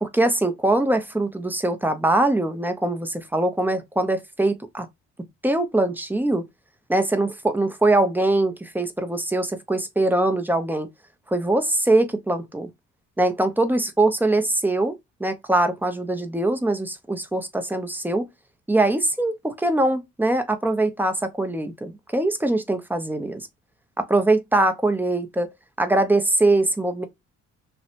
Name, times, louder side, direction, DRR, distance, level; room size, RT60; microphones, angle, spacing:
voice 1, 0.0-4.9 5.4-6.4 6.9-10.9 11.3-12.7 13.2-18.3 18.7-23.5 24.0-25.5 25.8-27.1, right 2 dB, 5° right, 0.5 m, -22 dB
2.7 x 2.1 x 2.5 m
cardioid pair, 90°, 30 cm